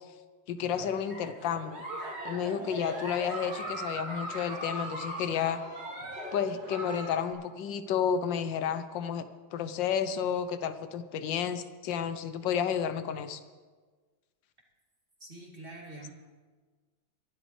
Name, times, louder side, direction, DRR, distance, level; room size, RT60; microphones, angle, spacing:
voice 1, 0.5-1.8 2.2-5.6 6.3-9.2 9.5-13.4, left 8 dB, 85° left, 11 dB, 1.4 m, -31 dB
Giggle, 0.6-7.3, right 1 dB, 55° right, 3.3 m, -39 dB
voice 2, 15.2-16.1, right 2 dB, 30° right, -2 dB, 2.7 m, -45 dB
22.5 x 12.0 x 3.2 m, 1.4 s
omnidirectional pair, 2.0 m